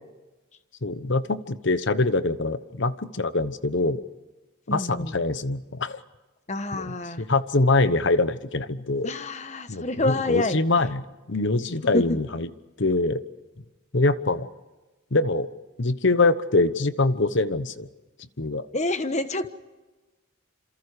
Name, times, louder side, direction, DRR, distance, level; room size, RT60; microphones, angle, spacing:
voice 1, 0.8-4.0 4.7-6.0 6.7-9.1 9.7-12.5 12.8-13.2 13.9-14.5 15.1-15.5 15.8-17.9 18.4-18.7, left 2 dB, 55° left, 13 dB, 1.1 m, -24 dB
voice 2, 4.7-5.2 6.5-7.2 9.0-10.6 11.9-12.2 18.7-19.5, left 2 dB, 35° left, 10 dB, 1.3 m, -27 dB
27.5 x 27.5 x 5.0 m, 1.2 s
head